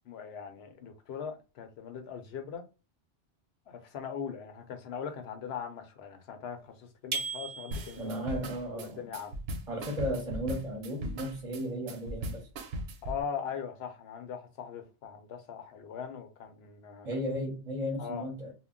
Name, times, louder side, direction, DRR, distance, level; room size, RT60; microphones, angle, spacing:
voice 1, 0.0-2.6 3.7-8.1 8.7-9.4 13.0-17.2 18.0-18.3, left 7 dB, 70° left, 0.8 m, -40 dB
sound 1, 7.1-8.2, right 4 dB, 55° right, 0.3 m, -36 dB
sound 2, 7.7-13.2, right 1 dB, 70° right, 0.8 m, -38 dB
voice 2, 8.0-9.0 9.7-12.4 17.0-18.5, equal, 35° right, 0.7 m, -35 dB
2.2 x 2.1 x 3.6 m
omnidirectional pair, 1.1 m